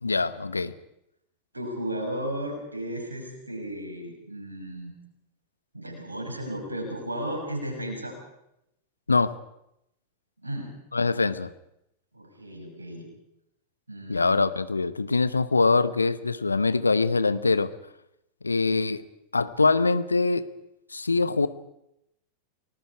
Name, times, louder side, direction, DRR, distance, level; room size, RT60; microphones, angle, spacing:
voice 1, 0.0-0.7 9.1-9.3 10.9-11.5 14.1-17.7 18.4-19.0 19.3-20.4 20.9-21.5, left 3 dB, 80° left, 15 dB, 0.9 m, -23 dB
voice 2, 1.5-4.9 5.7-8.2 10.4-10.7 12.1-13.1 13.9-14.5, right 1 dB, 80° right, 2 dB, 6.3 m, -34 dB
29.5 x 19.5 x 4.8 m, 0.81 s
figure-of-eight pair, 90°, 0 cm